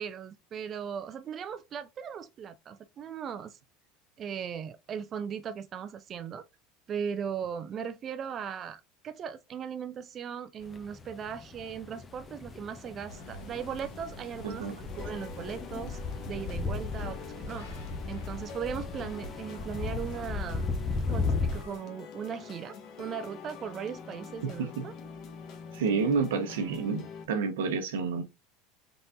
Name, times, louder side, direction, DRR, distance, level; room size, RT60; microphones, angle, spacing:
voice 1, 0.0-3.6 4.2-6.4 6.9-16.0 16.3-17.7 18.1-20.7 21.1-24.9, right 7 dB, 40° right, 0.4 m, -38 dB
sound 1, 10.6-21.6, left 4 dB, 25° left, 0.7 m, -36 dB
sound 2, 13.1-21.8, left 1 dB, 85° left, 1.5 m, -48 dB
sound 3, 14.9-27.3, left 5 dB, 55° left, 1.1 m, -46 dB
voice 2, 24.4-24.8 25.7-28.2, right 5 dB, 85° right, 0.9 m, -29 dB
3.9 x 3.5 x 2.7 m
supercardioid pair, 105°, 0 cm